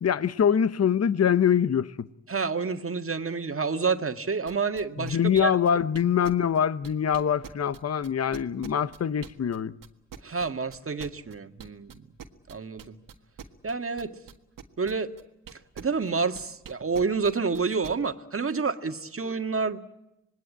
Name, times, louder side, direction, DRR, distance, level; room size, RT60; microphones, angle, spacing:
voice 1, 0.0-2.1 5.0-9.7, left 8 dB, 50° left, 0.9 m, -24 dB
voice 2, 2.3-5.5 10.2-12.0 12.5-13.0 13.6-14.2 14.8-15.1 15.8-19.8, right 4 dB, 40° right, 1.8 m, -29 dB
sound 1, 4.5-9.6 9.8-16.1 16.4-17.9, right 8 dB, 80° right, 1.6 m, -44 dB
26.0 x 19.5 x 8.8 m
supercardioid pair, 45°, 33 cm